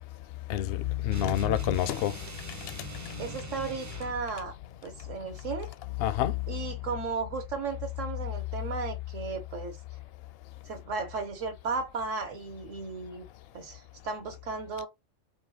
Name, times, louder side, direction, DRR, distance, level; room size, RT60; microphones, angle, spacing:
voice 1, 0.5-2.2 3.0-3.4 6.0-6.4, left 12 dB, 65° left, 0.6 m, -28 dB
sound 1, 1.1-4.2, right 2 dB, 25° right, 0.4 m, -41 dB
voice 2, 3.2-4.5 4.8-5.7 6.5-9.8 10.7-13.3 13.5-14.9, right 4 dB, 70° right, 1.5 m, -35 dB
4.8 x 2.3 x 3.7 m
omnidirectional pair, 1.4 m